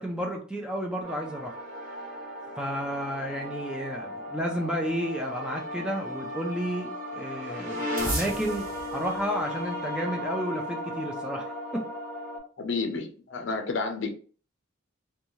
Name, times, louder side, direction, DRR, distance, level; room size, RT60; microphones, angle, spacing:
voice 1, 0.0-1.6 2.6-11.9, equal, 5° right, 0.3 m, -32 dB
sound 1, 1.0-12.4, equal, 40° right, 1.1 m, -35 dB
voice 2, 12.6-14.1, left 4 dB, 60° left, 0.5 m, -30 dB
2.6 x 2.2 x 3.0 m
head